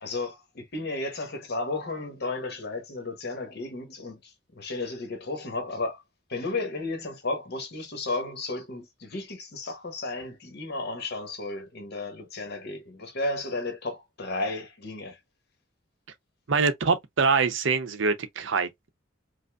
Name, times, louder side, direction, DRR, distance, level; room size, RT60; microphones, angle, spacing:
voice 1, 0.0-6.0 6.3-15.2, left 2 dB, 55° left, 1.0 m, -33 dB
voice 2, 16.5-18.9, right 4 dB, 70° right, 0.6 m, -24 dB
5.1 x 2.0 x 2.3 m
head